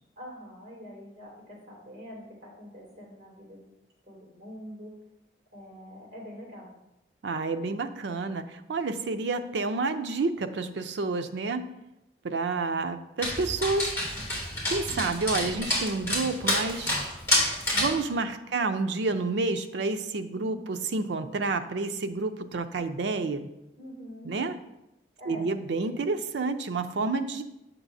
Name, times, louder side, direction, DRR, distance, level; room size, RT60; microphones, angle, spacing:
voice 1, 0.2-3.6 4.1-5.0 5.5-6.7 18.5-18.6 20.3-20.7 23.8-24.3 25.2-25.5 25.7-25.9, equal, 40° right, -4 dB, 2.5 m, -45 dB
voice 2, 7.2-11.7 12.2-13.9 14.7-17.0 17.7-23.5 24.2-24.5 25.3-27.4, right 3 dB, 80° right, 8 dB, 0.5 m, -29 dB
Dog, 13.2-18.0, left 1 dB, 15° left, 2.3 m, -28 dB
8.1 x 6.0 x 2.6 m, 0.88 s
head